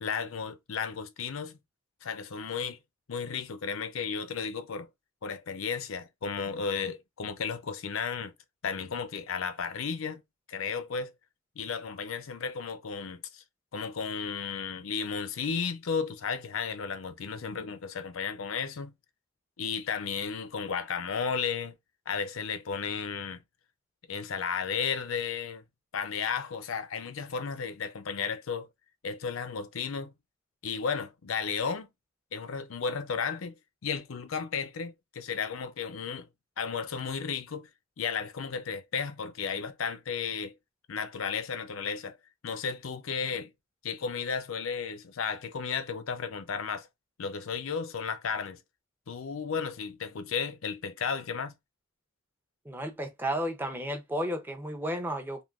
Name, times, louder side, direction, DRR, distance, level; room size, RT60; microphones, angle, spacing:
voice 1, 0.0-1.6 2.0-2.8 3.1-4.9 5.2-8.3 8.6-10.2 10.5-11.1 11.6-13.4 13.7-18.9 19.6-21.8 22.1-23.4 24.1-25.6 25.9-28.7 29.0-30.1 30.6-31.9 32.3-33.6 33.8-36.3 36.6-37.7 38.0-40.6 40.9-42.2 42.4-43.5 43.8-46.9 47.2-48.6 49.1-51.5, left 6 dB, 85° left, 0.6 m, -34 dB
voice 2, 52.7-55.4, equal, 10° right, 0.6 m, -33 dB
3.6 x 2.6 x 2.4 m
head